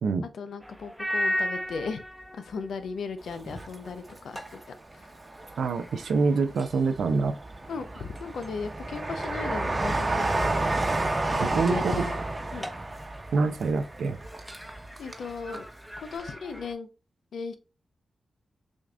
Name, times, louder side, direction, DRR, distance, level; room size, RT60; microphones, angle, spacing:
voice 1, 0.3-2.0 2.4-4.6 4.9-5.1 7.7-10.7 11.3-12.2 12.5-12.7 15.0-15.7 16.0-16.9 17.3-17.6, left 5 dB, 85° left, 0.6 m, -36 dB
sound 1, 0.6-16.7, equal, 5° right, 0.9 m, -39 dB
Train, 3.3-4.6 5.0-6.0 6.5-15.3 15.5-15.6, right 2 dB, 40° right, 1.0 m, -30 dB
voice 2, 5.6-7.4 11.4-12.1 13.3-14.2, right 4 dB, 85° right, 0.5 m, -26 dB
6.2 x 2.5 x 2.3 m
cardioid pair, 45°, 0 cm